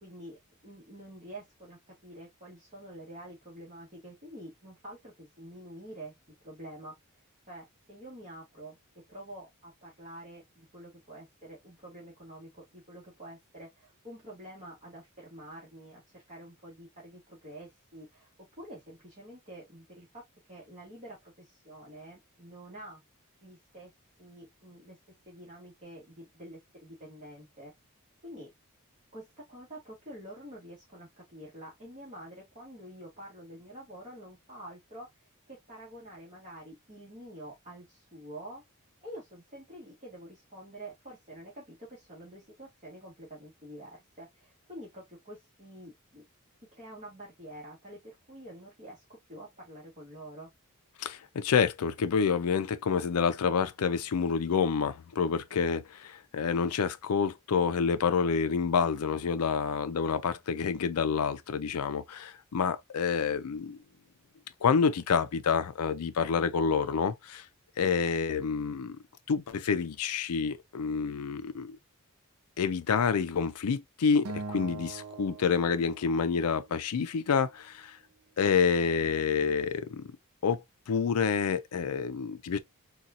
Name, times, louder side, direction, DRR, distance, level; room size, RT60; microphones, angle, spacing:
voice 1, 0.0-6.9 7.5-8.8 9.1-18.3 18.6-20.2 20.5-23.0 23.4-23.9 24.2-25.0 25.3-27.7 28.2-28.5 29.1-35.1 35.5-38.6 39.0-46.2 46.7-50.5, right 1 dB, 35° right, 1.3 m, -47 dB
voice 2, 51.0-63.8 64.6-67.4 67.8-69.0 69.3-71.8 72.6-78.0 78.4-80.1 80.4-82.6, left 6 dB, 80° left, 0.5 m, -28 dB
Acoustic guitar, 74.2-76.6, right 3 dB, 80° right, 0.6 m, -42 dB
4.1 x 2.3 x 2.4 m
head